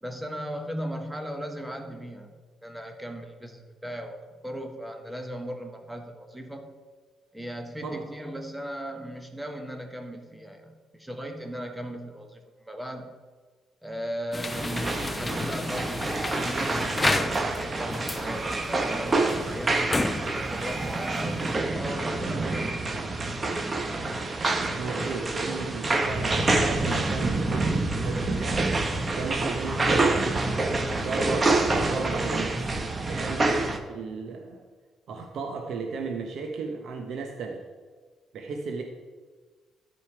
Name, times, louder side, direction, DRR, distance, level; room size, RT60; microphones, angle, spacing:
voice 1, 0.0-2.3 2.6-4.2 4.4-6.7 7.3-13.1 13.8-19.8 20.3-23.6, equal, 5° right, 5 dB, 1.4 m, -37 dB
sound 1, 14.3-21.5, left 3 dB, 20° left, 0.6 m, -33 dB
sound 2, 14.5-33.8, right 2 dB, 30° right, 1.1 m, -27 dB
voice 2, 24.8-30.4 31.0-32.6 33.1-33.6 33.9-34.6 35.1-37.6 38.3-38.8, right 4 dB, 70° right, 3 dB, 1.0 m, -35 dB
13.0 x 5.2 x 4.9 m, 1.4 s
cardioid pair, 90°, 0 cm